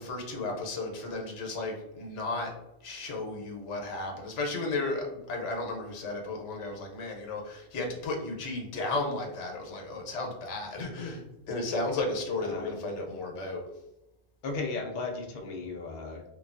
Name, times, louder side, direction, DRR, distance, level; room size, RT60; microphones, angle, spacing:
voice 1, 0.0-2.5 2.8-13.6, left 2 dB, 85° left, 2 dB, 1.0 m, -34 dB
voice 2, 12.4-12.7 14.4-16.2, left 3 dB, 55° left, 1 dB, 0.6 m, -35 dB
3.1 x 2.3 x 2.4 m, 0.92 s
omnidirectional pair, 1.2 m